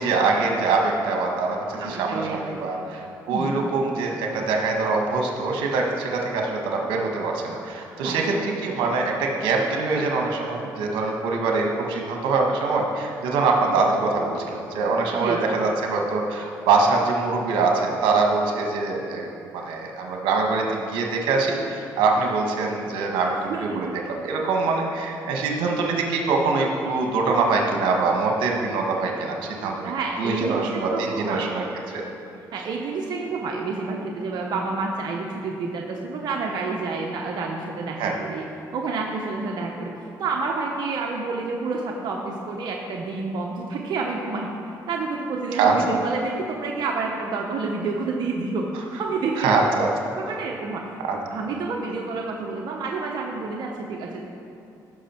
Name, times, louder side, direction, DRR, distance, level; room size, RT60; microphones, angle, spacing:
voice 1, 0.0-19.3 19.5-29.9 30.2-32.0 38.0-38.1 45.5-45.8 49.4-49.9 51.1-51.2, right 3 dB, 85° right, 1 dB, 1.4 m, -24 dB
voice 2, 1.8-2.8 3.3-3.6 8.0-8.3 15.2-15.6 23.5-24.0 29.8-31.5 32.5-38.4 38.7-39.9 40.2-44.5 44.9-49.6 50.2-50.9 51.3-54.2, right 4 dB, 60° right, 0 dB, 1.0 m, -29 dB
15.5 x 6.2 x 4.4 m, 2.6 s
cardioid pair, 85°, 8 cm